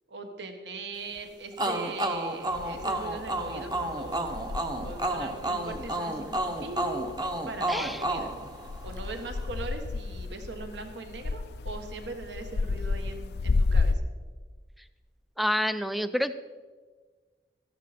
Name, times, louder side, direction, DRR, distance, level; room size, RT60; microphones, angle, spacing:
voice 1, 0.1-4.4 4.8-7.1 7.5-8.3 8.8-14.1, right 3 dB, 75° right, 5 dB, 1.4 m, -40 dB
sound 1, 1.6-9.2, right 1 dB, 20° right, 0.8 m, -31 dB
sound 2, 2.5-14.0, left 3 dB, 60° left, 0.4 m, -33 dB
voice 2, 7.7-8.0 15.4-16.3, equal, ahead, 12 dB, 0.4 m, -28 dB
14.0 x 11.0 x 4.3 m, 1.4 s
head